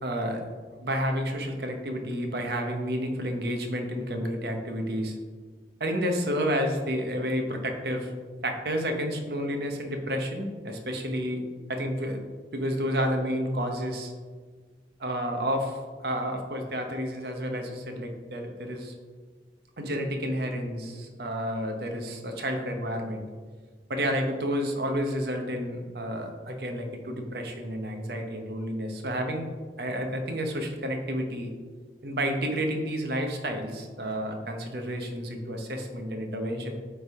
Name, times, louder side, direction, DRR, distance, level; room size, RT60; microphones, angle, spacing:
voice 1, 0.0-0.4 0.7-5.2 5.8-8.1 8.4-11.4 11.7-14.1 15.0-18.9 19.8-23.2 23.9-29.5 29.8-31.5 32.0-36.7, equal, 60° right, 4 dB, 0.9 m, -30 dB
8.6 x 3.5 x 3.5 m, 1.5 s
head